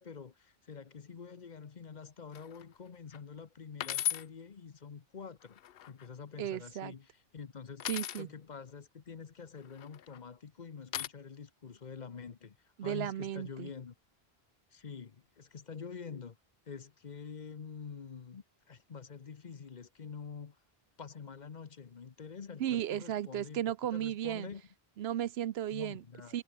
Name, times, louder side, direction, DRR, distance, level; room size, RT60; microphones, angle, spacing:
voice 1, 0.0-5.6 5.9-7.8 8.2-13.9 14.7-16.4 16.7-20.6 21.0-23.6 23.9-24.6 25.7-26.4, left 6 dB, 45° left, 1.0 m, -47 dB
sound 1, 2.3-2.6 3.1-3.2 3.8-4.3 5.4-6.1 7.8-8.2 9.7-10.2 10.9-11.1, left 11 dB, 70° left, 0.8 m, -36 dB
voice 2, 6.4-6.9 7.9-8.3 12.8-13.7 22.6-24.5 25.0-26.0 26.3-26.4, right 11 dB, 85° right, 0.9 m, -35 dB
omnidirectional pair, 1.0 m